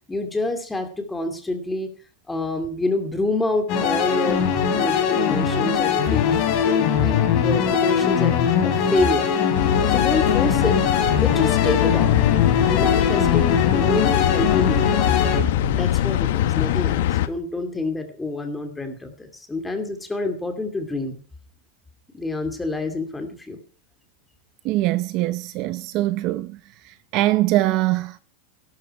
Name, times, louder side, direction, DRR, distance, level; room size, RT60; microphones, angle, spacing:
voice 1, 0.1-1.9 2.3-6.3 6.7-9.3 9.9-10.8 11.2-12.1 12.6-15.0 15.8-21.2 22.1-23.6, left 2 dB, 5° left, 2.5 m, -27 dB
sound 1, 3.7-15.4, left 7 dB, 40° left, 3.8 m, -21 dB
sound 2, 9.5-17.3, left 13 dB, 65° left, 1.3 m, -23 dB
voice 2, 24.6-26.6 26.8-28.2, right 16 dB, 35° right, 0.6 m, -22 dB
18.0 x 12.0 x 4.4 m
supercardioid pair, 170°, 0 cm